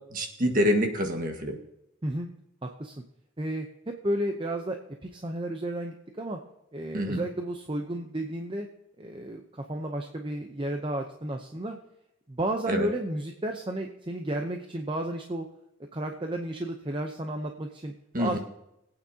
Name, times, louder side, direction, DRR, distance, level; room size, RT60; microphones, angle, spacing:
voice 1, 0.1-1.6 6.9-7.2 12.7-12.9 18.1-18.4, equal, 40° right, 4 dB, 1.6 m, -26 dB
voice 2, 2.6-2.9 3.4-6.4 6.7-8.7 9.0-11.8 12.3-15.5 15.9-17.9 18.2-18.4, right 1 dB, 25° right, 4 dB, 0.7 m, -32 dB
21.5 x 8.8 x 2.8 m, 0.83 s
head